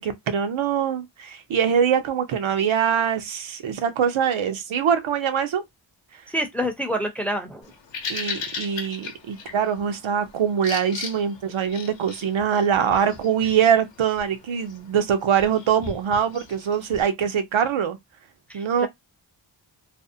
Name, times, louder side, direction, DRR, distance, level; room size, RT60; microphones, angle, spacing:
voice 1, 0.0-5.6 8.1-18.0 18.5-18.9, right 8 dB, 90° right, 0.6 m, -23 dB
voice 2, 6.3-7.7 18.5-18.9, equal, 5° left, 0.4 m, -27 dB
Bird vocalization bird call bird song, 7.6-17.0, left 5 dB, 65° left, 0.7 m, -38 dB
2.5 x 2.0 x 2.6 m
wide cardioid pair, 115°, 47 cm